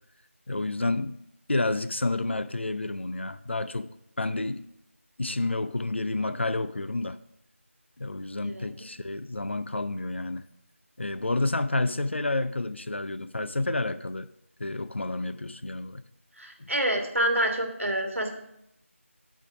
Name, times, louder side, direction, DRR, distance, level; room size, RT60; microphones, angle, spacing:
voice 1, 0.5-1.2 1.5-3.9 4.2-4.7 5.2-7.2 8.0-10.5 11.0-14.3 14.6-16.0 16.6-16.7, left 2 dB, 55° left, 13 dB, 0.4 m, -30 dB
voice 2, 8.4-8.7 16.4-18.3, right 1 dB, 70° right, 3 dB, 1.7 m, -27 dB
7.8 x 4.5 x 6.9 m, 0.79 s
figure-of-eight pair, 170°, 7 cm